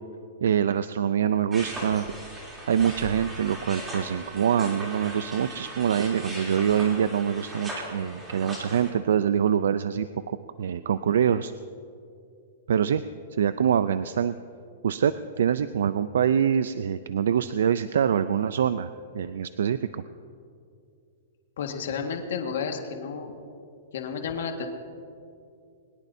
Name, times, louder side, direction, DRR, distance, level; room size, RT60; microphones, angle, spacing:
voice 1, 0.4-2.1 2.7-11.5 12.7-13.0 13.3-14.4 14.8-20.0, right 8 dB, 80° right, 13 dB, 0.4 m, -25 dB
sound 1, 1.5-8.9, right 1 dB, 15° right, 3.1 m, -38 dB
voice 2, 21.6-23.4 23.9-24.7, left 6 dB, 70° left, 3 dB, 1.7 m, -31 dB
22.0 x 20.0 x 2.7 m, 2.5 s
hypercardioid pair, 160°, 0 cm